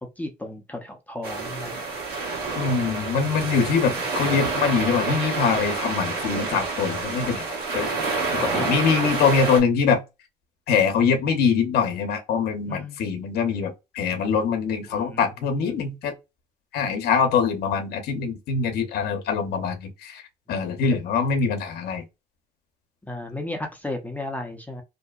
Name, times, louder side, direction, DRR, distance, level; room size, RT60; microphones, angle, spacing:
voice 1, 0.2-1.8 8.4-8.8 12.7-13.1 14.9-15.7 23.1-24.8, left 1 dB, 10° left, 0.5 m, -34 dB
sound 1, 1.2-9.6, right 3 dB, 65° right, 1.3 m, -28 dB
voice 2, 2.5-7.9 8.3-10.0 10.7-16.1 16.7-20.2 20.5-22.0, left 5 dB, 70° left, 0.7 m, -23 dB
2.7 x 2.1 x 2.3 m
cardioid pair, 110°, 17 cm